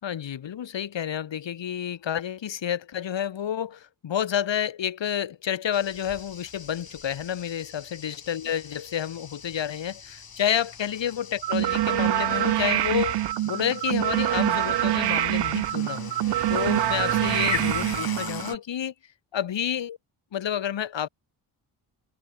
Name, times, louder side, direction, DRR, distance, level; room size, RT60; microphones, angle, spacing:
voice 1, 0.0-13.1 13.4-16.1 16.5-18.9 19.3-20.0 20.3-21.1, left 9 dB, 75° left, 4.8 m, -29 dB
sound 1, 5.7-18.5, left 6 dB, 50° left, 7.4 m, -41 dB
sound 2, 11.4-18.6, right 15 dB, 65° right, 0.6 m, -25 dB
cardioid pair, 60°, 44 cm